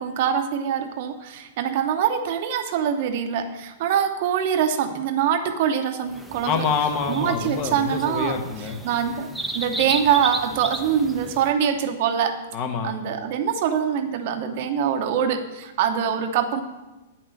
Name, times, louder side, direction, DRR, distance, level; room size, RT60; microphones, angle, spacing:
voice 1, 0.0-6.6 7.1-8.4 8.8-9.3 9.5-12.4 12.8-16.6, right 8 dB, 55° right, 7 dB, 0.9 m, -24 dB
sound 1, 6.1-11.5, right 1 dB, 5° right, 0.7 m, -34 dB
voice 2, 6.4-8.8 12.5-12.9, left 5 dB, 40° left, 6 dB, 1.2 m, -26 dB
8.5 x 5.9 x 6.4 m, 1.1 s
hypercardioid pair, 135°, 0 cm